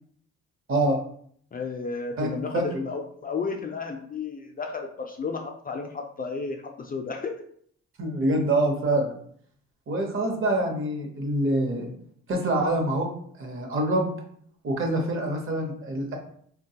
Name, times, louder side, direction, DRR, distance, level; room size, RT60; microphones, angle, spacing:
voice 1, 0.7-1.0 2.2-2.3 2.5-2.6 8.0-9.2 9.9-11.9 12.3-13.1 13.4-14.1 14.6-16.2, right 1 dB, 45° right, 2 dB, 0.8 m, -25 dB
voice 2, 1.5-7.3, left 4 dB, 30° left, 3 dB, 0.4 m, -33 dB
3.3 x 2.2 x 2.8 m, 0.62 s
cardioid pair, 90°, 30 cm